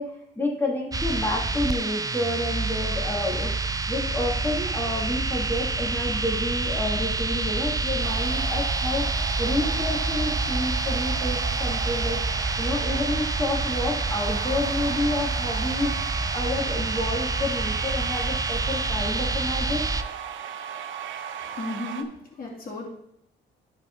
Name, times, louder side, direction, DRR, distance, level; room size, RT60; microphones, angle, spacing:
voice 1, 0.0-9.1 9.4-19.8 21.5-21.9, left 1 dB, 10° left, -3 dB, 2.9 m, -30 dB
sound 1, 0.9-20.0, right 3 dB, 20° right, 0.5 m, -27 dB
sound 2, 8.0-22.0, right 8 dB, 75° right, 0.8 m, -36 dB
voice 2, 21.5-22.9, left 2 dB, 45° left, -3 dB, 2.7 m, -34 dB
11.5 x 4.6 x 4.1 m, 0.74 s
cardioid pair, 90°, 20 cm